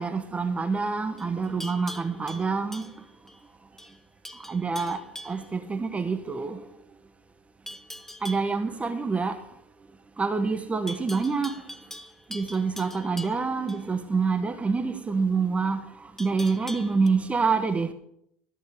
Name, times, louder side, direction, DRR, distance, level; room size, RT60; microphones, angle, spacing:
voice 1, 0.0-2.9 4.3-6.7 8.2-9.4 10.2-11.6 12.3-17.9, right 4 dB, 20° right, 1.1 m, -27 dB
Livestock farm animals working animals, 1.2-3.4 3.8-4.0 4.2-5.5 7.7-8.5 10.9-13.8 16.2-17.1, equal, 5° left, 0.8 m, -43 dB
13.5 x 6.1 x 7.1 m
supercardioid pair, 95°, 7 cm